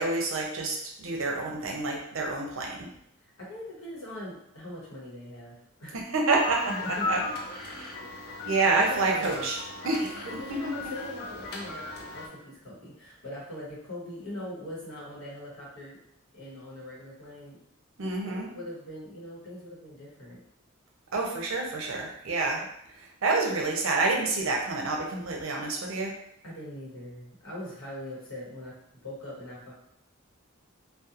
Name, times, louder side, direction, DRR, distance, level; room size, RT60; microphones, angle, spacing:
voice 1, 0.0-2.9 5.9-7.2 7.7-7.9 8.5-9.6 9.8-10.1 10.5-10.6 18.0-18.5 21.1-26.2, right 3 dB, 70° right, 0 dB, 0.6 m, -28 dB
voice 2, 3.2-6.0 6.7-7.2 7.6-8.0 8.6-9.5 10.0-16.0 16.3-17.6 18.0-20.4 26.4-29.7, left 1 dB, 75° left, -6 dB, 1.0 m, -41 dB
sound 1, 6.3-12.3, left 3 dB, 50° left, 0.4 m, -37 dB
2.8 x 2.2 x 2.4 m, 0.73 s
head